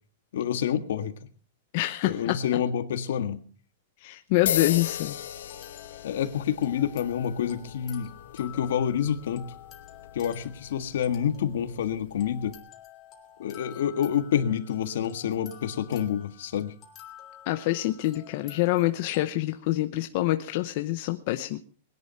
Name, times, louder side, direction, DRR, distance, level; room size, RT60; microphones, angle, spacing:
voice 1, 0.3-1.1 2.0-3.4 6.0-9.5 10.1-12.6 13.4-16.7, left 9 dB, 65° left, 8 dB, 1.7 m, -28 dB
voice 2, 1.7-2.4 4.0-5.2 17.5-21.6, left 17 dB, 40° left, 8 dB, 0.8 m, -26 dB
sound 1, 4.3-19.3, left 10 dB, 20° left, 2.8 m, -50 dB
sound 2, 4.5-12.6, left 10 dB, 80° left, 1.9 m, -37 dB
20.5 x 11.0 x 5.7 m, 0.42 s
supercardioid pair, 175°, 0 cm